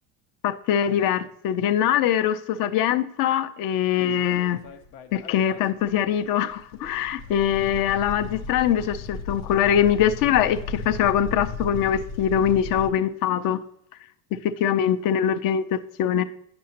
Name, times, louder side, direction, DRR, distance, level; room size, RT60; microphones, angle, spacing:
voice 1, 0.4-4.6 5.1-13.6 14.4-16.2, left 9 dB, 45° left, 0.6 m, -23 dB
sound 1, 4.0-5.6 5.9-6.0 6.4-12.9, left 4 dB, 85° left, 0.8 m, -36 dB
9.5 x 6.1 x 2.8 m
supercardioid pair, 125°, 47 cm